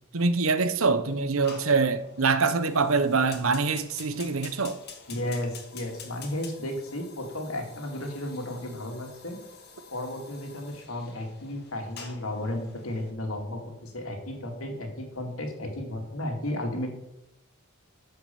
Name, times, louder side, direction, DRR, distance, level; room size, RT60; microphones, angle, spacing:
voice 1, 0.1-4.8, right 4 dB, 75° right, 1.0 m, -24 dB
Fire, 1.4-13.1, left 5 dB, 50° left, 2.1 m, -48 dB
voice 2, 5.1-9.4 9.9-16.9, left 1 dB, 80° left, 2.5 m, -34 dB
13.5 x 5.9 x 7.0 m
head